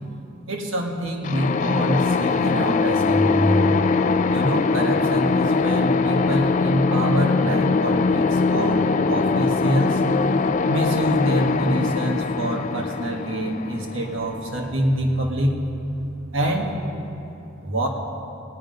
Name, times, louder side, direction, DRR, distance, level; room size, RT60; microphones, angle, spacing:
voice 1, 0.5-3.7 4.3-10.0 10.7-15.6 16.3-16.8 17.6-17.9, equal, 80° right, 1 dB, 1.7 m, -25 dB
sound 1, 1.2-14.9, left 4 dB, 40° left, 0.4 m, -22 dB
17.0 x 9.5 x 5.3 m, 2.9 s
head